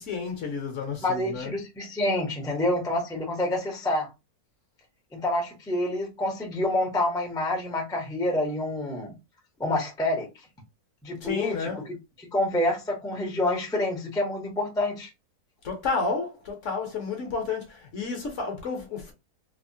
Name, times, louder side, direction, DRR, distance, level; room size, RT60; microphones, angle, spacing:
voice 1, 0.1-1.5 11.2-11.9 15.6-19.1, left 4 dB, 60° left, 0.9 m, -31 dB
voice 2, 1.0-4.1 5.1-9.1 9.6-10.3 11.0-11.9 12.3-15.1, left 1 dB, 5° left, 0.4 m, -27 dB
3.4 x 2.0 x 2.6 m
omnidirectional pair, 1.7 m